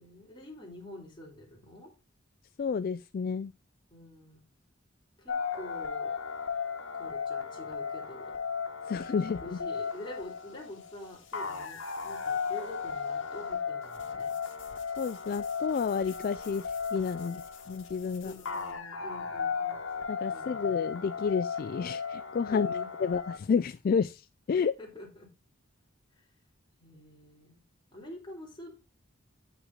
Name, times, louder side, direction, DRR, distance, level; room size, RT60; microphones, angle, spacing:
voice 1, 0.0-1.9 3.9-4.4 5.2-6.1 6.9-8.4 9.4-14.3 18.2-19.8 20.3-20.8 22.5-23.2 24.8-25.3 26.8-27.6 27.9-28.8, left 1 dB, 25° left, 3.1 m, -46 dB
voice 2, 2.6-3.5 8.9-9.6 15.0-17.4 17.7-18.3 20.1-22.7 23.0-24.7, left 6 dB, 45° left, 0.3 m, -30 dB
sound 1, 5.3-23.4, left 6 dB, 85° left, 1.4 m, -36 dB
sound 2, 8.5-18.8, left 8 dB, 65° left, 2.1 m, -56 dB
8.2 x 5.9 x 3.9 m
head